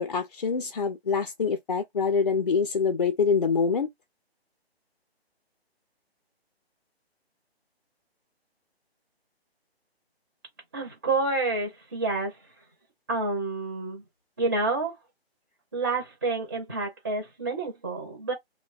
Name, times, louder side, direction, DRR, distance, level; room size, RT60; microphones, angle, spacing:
voice 1, 0.0-3.9, left 5 dB, 40° left, 0.5 m, -25 dB
voice 2, 10.7-12.3 13.1-14.0 14.4-14.9 15.7-18.3, right 3 dB, 15° right, 0.5 m, -28 dB
3.1 x 2.1 x 2.4 m
figure-of-eight pair, 145°, 32 cm